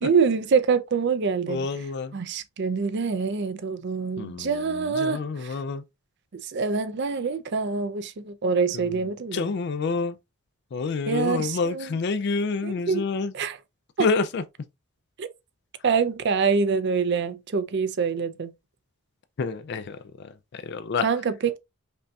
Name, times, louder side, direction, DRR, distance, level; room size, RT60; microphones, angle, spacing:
voice 1, 0.0-1.7 2.1-5.6 6.3-9.5 11.1-12.0 12.6-13.0 13.3-13.6 14.0-14.1 15.2-15.3 15.8-18.5 21.0-21.6, right 5 dB, 50° right, 0.4 m, -25 dB
voice 2, 1.5-2.1 4.2-5.8 8.7-8.9 9.3-10.2 10.7-13.3 14.0-14.4 19.4-20.0 20.5-21.1, left 4 dB, 50° left, 0.3 m, -28 dB
5.3 x 2.7 x 2.3 m
head